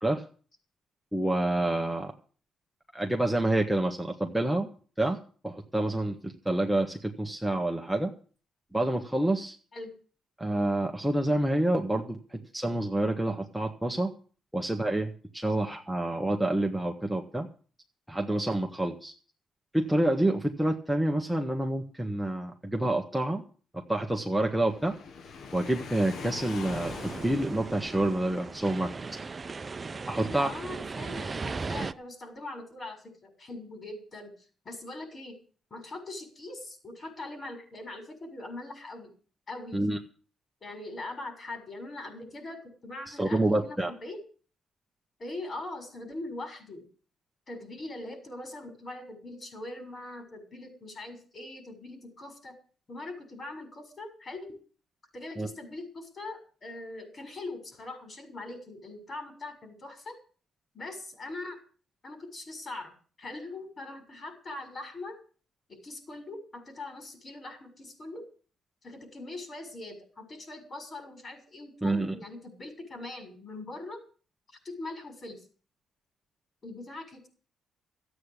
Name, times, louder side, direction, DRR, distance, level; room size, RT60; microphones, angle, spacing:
voice 1, 1.1-2.1 2.9-4.7 5.0-8.1 8.7-9.5 10.4-14.1 14.5-17.5 18.1-19.1 19.7-23.4 23.7-25.0 25.5-28.9 30.1-30.5 39.7-40.0 43.1-43.9 55.4-55.5 71.8-72.1, right 1 dB, 5° right, 1 dB, 1.6 m, -28 dB
Waves surf, 24.6-28.1, left 5 dB, 65° left, 1.4 m, -42 dB
sound 1, 26.7-31.9, right 4 dB, 30° right, 0.7 m, -37 dB
voice 2, 30.2-34.3 34.6-35.4 35.7-39.1 39.5-39.8 40.6-44.2 45.2-46.8 47.5-52.5 52.9-54.5 55.1-60.2 60.7-61.6 62.0-62.9 63.2-65.2 65.7-68.2 68.8-74.0 74.6-75.4 76.6-77.3, left 2 dB, 40° left, 6 dB, 6.5 m, -41 dB
14.0 x 8.8 x 8.4 m, 0.40 s
cardioid pair, 90°, 0 cm